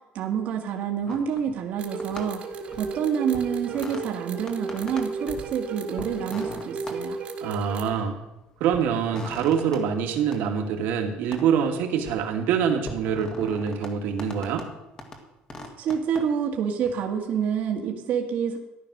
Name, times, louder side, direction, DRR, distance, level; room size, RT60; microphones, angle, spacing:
voice 1, 0.1-2.4 2.8-7.2 15.8-18.6, right 7 dB, 55° right, 2 dB, 1.8 m, -28 dB
sound 1, 1.0-1.7 2.0-3.0 3.3-4.0 4.4-5.5 6.0-7.0 7.6-8.2 8.7-9.8 10.3-10.4 11.3-11.5 11.8-12.2 12.8-13.9 14.2-14.7 15.0-15.2 15.5-16.2 16.8-16.9, left 1 dB, 20° left, 1.9 m, -40 dB
sound 2, 1.8-7.9, right 4 dB, 40° right, 2.0 m, -34 dB
voice 2, 7.4-8.2 8.6-14.7, right 7 dB, 75° right, 3 dB, 2.6 m, -25 dB
14.5 x 11.5 x 6.6 m, 0.99 s
cardioid pair, 165°, 3 cm